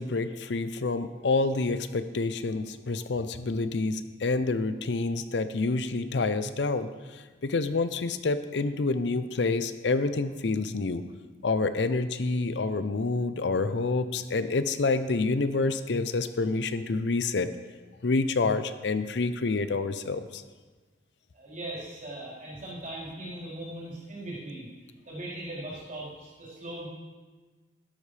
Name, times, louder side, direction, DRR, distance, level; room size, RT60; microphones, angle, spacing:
voice 1, 0.0-11.0 11.4-17.5 18.0-20.4, left 3 dB, 80° left, 12 dB, 0.6 m, -28 dB
voice 2, 21.3-24.7 25.0-26.9, right 1 dB, 45° right, -7 dB, 4.3 m, -39 dB
12.0 x 12.0 x 3.4 m, 1.3 s
head